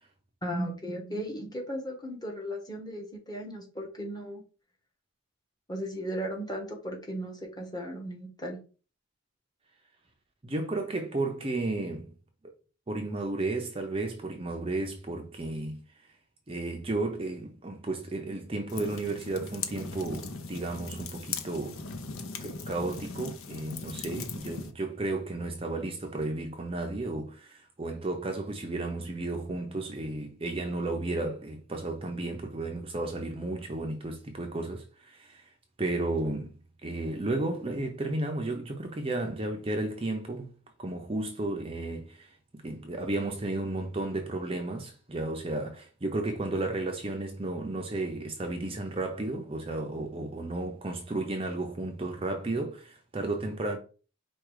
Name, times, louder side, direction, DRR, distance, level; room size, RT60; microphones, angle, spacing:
voice 1, 0.4-4.4 5.7-8.6, equal, 20° left, 1.1 m, -36 dB
voice 2, 10.4-12.1 12.9-15.8 16.5-21.8 22.4-35.5 35.8-40.5 40.8-53.8, right 2 dB, 25° right, 0.5 m, -33 dB
sound 1, 18.7-24.7, left 4 dB, 75° left, 0.6 m, -39 dB
4.7 x 2.3 x 4.7 m
head